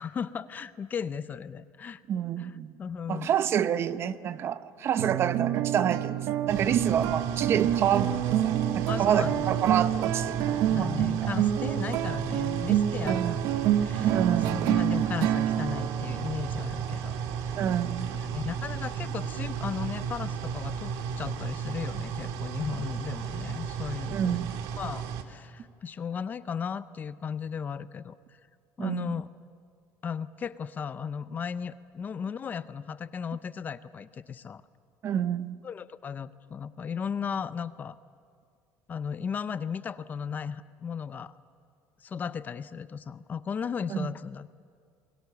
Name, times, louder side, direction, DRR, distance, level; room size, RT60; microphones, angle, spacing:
voice 1, 0.0-2.0 2.4-2.5 2.8-3.3 8.9-9.5 10.7-17.2 17.5-17.6 18.2-24.5 24.8-28.2 28.8-29.3 30.0-34.6 35.6-37.9 38.9-41.3 42.0-44.5, left 7 dB, 25° left, 0.6 m, -36 dB
voice 2, 2.1-2.8 3.1-11.3 13.0-13.4 14.1-14.7 17.5-18.1 24.1-24.5 28.8-29.1 35.0-35.6 43.9-44.1, right 9 dB, 40° right, 0.7 m, -28 dB
sound 1, 5.0-17.7, right 11 dB, 65° right, 1.0 m, -28 dB
sound 2, 6.5-25.2, right 7 dB, 85° right, 1.9 m, -34 dB
28.0 x 22.5 x 7.0 m
cardioid pair, 150°, 6 cm